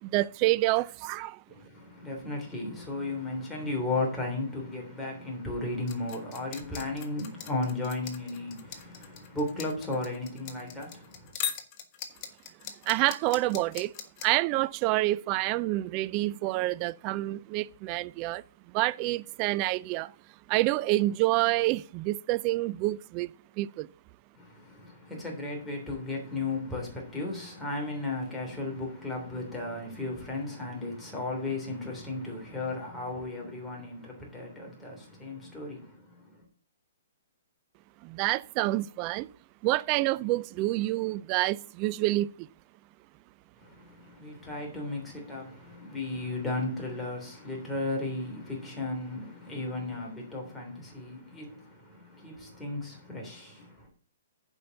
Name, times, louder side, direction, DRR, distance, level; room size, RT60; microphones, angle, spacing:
voice 1, 0.0-1.4 12.9-13.9 14.2-18.4 18.7-20.1 20.5-23.3 23.6-23.9 38.0-39.3 39.6-42.5, right 18 dB, 35° right, 0.3 m, -28 dB
voice 2, 1.5-11.3 24.3-36.4 43.6-53.9, left 2 dB, 5° left, 3.2 m, -35 dB
sound 1, 5.9-14.2, left 9 dB, 35° left, 1.3 m, -39 dB
8.0 x 5.4 x 6.4 m
hypercardioid pair, 140°, 0 cm